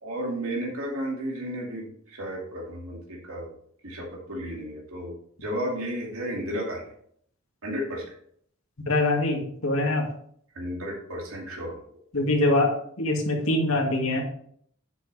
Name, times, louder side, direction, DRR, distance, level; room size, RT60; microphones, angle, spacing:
voice 1, 0.0-3.5 3.8-5.1 5.4-6.9 7.6-8.1 10.5-11.8, equal, 80° right, -2 dB, 2.5 m, -33 dB
voice 2, 8.9-10.1 12.1-14.2, left 2 dB, 70° left, 1 dB, 2.3 m, -24 dB
9.3 x 7.8 x 3.4 m, 0.64 s
head